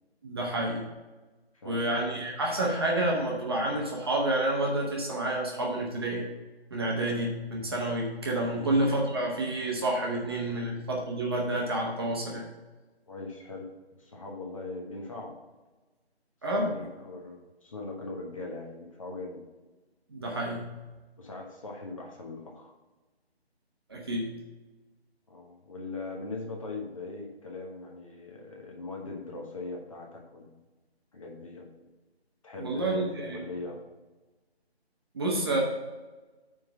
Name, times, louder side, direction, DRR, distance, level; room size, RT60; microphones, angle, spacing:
voice 1, 0.2-0.8 1.6-6.3 6.7-12.4 16.4-16.8 20.1-20.7 23.9-24.3 32.6-33.4 35.1-35.6, right 1 dB, 25° right, -2 dB, 1.0 m, -29 dB
voice 2, 1.5-2.0 8.5-8.7 10.5-10.7 13.1-13.7 14.0-15.3 16.5-19.4 21.2-22.8 25.3-30.6 31.1-31.7 32.4-33.0 33.3-33.8, left 3 dB, 30° left, 0 dB, 1.1 m, -40 dB
8.9 x 3.8 x 5.9 m, 1.2 s
figure-of-eight pair, 160°, 32 cm